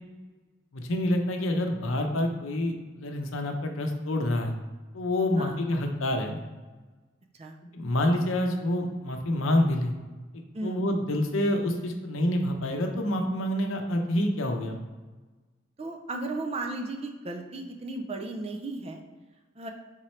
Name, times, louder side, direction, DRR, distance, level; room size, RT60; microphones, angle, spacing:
voice 1, 0.7-4.5 4.9-6.4 7.7-9.9 10.6-14.8, left 1 dB, 75° left, 4 dB, 0.6 m, -27 dB
voice 2, 15.8-19.0 19.6-19.7, right 2 dB, 30° right, 3 dB, 0.4 m, -35 dB
3.7 x 3.1 x 4.3 m, 1.3 s
head